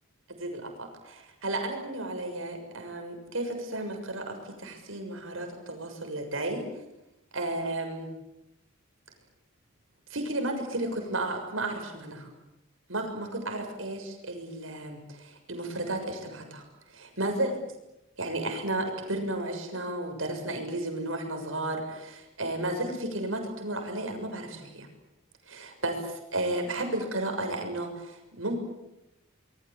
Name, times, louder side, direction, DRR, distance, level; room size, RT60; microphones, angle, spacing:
voice 1, 0.4-6.6 7.3-8.1 10.1-12.3 12.9-17.5 18.2-24.9 25.5-28.5, right 1 dB, 75° right, 5 dB, 6.8 m, -33 dB
26.0 x 22.5 x 8.6 m, 0.89 s
head